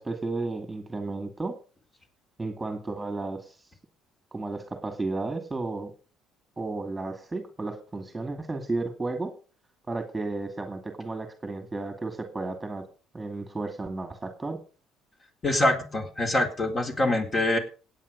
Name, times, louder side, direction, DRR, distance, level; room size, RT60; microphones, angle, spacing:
voice 1, 0.0-1.6 2.4-3.6 4.3-5.9 6.6-9.3 9.9-12.9 13.1-14.6, right 3 dB, 15° right, 6 dB, 2.3 m, -33 dB
voice 2, 15.4-17.6, left 1 dB, 30° left, 4 dB, 4.0 m, -24 dB
17.0 x 9.0 x 5.3 m, 0.37 s
cardioid pair, 120°, 0 cm